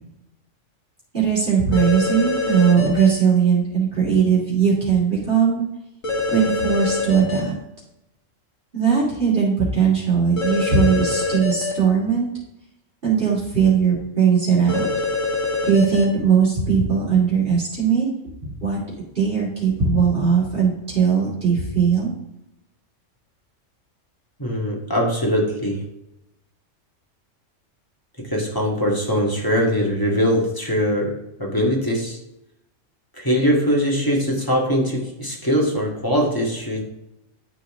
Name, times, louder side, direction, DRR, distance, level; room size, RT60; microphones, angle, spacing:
voice 1, 1.1-5.7 6.3-7.5 8.7-12.3 13.0-14.9 15.6-18.1 18.4-18.8 19.1-22.1, right 6 dB, 45° right, -7 dB, 3.1 m, -19 dB
sound 1, 1.7-3.1 6.0-7.4 10.4-11.7 14.7-16.0, left 3 dB, 85° left, 2.1 m, -24 dB
voice 2, 24.4-25.8 28.3-31.1 31.4-32.2 33.2-36.8, equal, 15° left, -1 dB, 1.8 m, -21 dB
12.0 x 4.1 x 3.7 m, 0.89 s
omnidirectional pair, 1.3 m